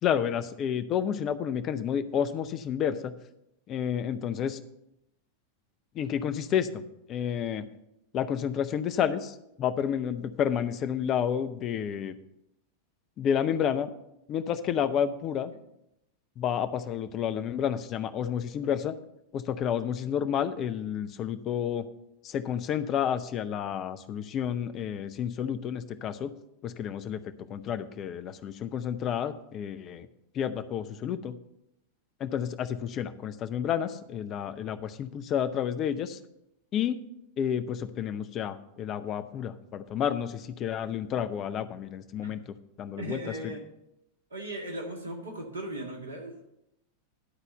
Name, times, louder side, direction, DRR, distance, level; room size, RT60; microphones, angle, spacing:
voice 1, 0.0-3.1 3.7-4.6 5.9-6.8 7.1-7.6 8.1-12.2 13.2-13.9 14.3-15.5 16.4-19.0 19.3-21.9 22.2-26.3 26.6-30.1 30.3-31.4 32.2-36.2 36.7-37.0 37.4-43.5, left 8 dB, 30° left, 11 dB, 0.6 m, -30 dB
voice 2, 43.0-43.6 44.3-46.3, right 1 dB, 70° right, 2 dB, 1.9 m, -37 dB
11.5 x 4.1 x 7.8 m, 0.83 s
figure-of-eight pair, 90°, 0 cm